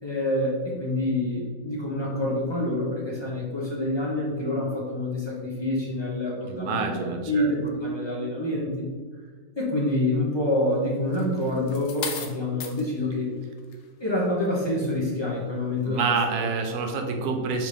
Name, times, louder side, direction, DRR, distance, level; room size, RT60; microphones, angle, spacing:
voice 1, 0.0-6.9 7.3-8.8 9.6-13.3 14.0-16.1, left 1 dB, 25° left, -5 dB, 0.5 m, -27 dB
voice 2, 6.5-7.5 15.9-17.7, right 4 dB, 85° right, 5 dB, 1.1 m, -27 dB
sound 1, 11.1-12.8 13.6-13.8, left 6 dB, 65° left, 0.7 m, -35 dB
4.0 x 3.7 x 3.2 m, 1.5 s
omnidirectional pair, 1.6 m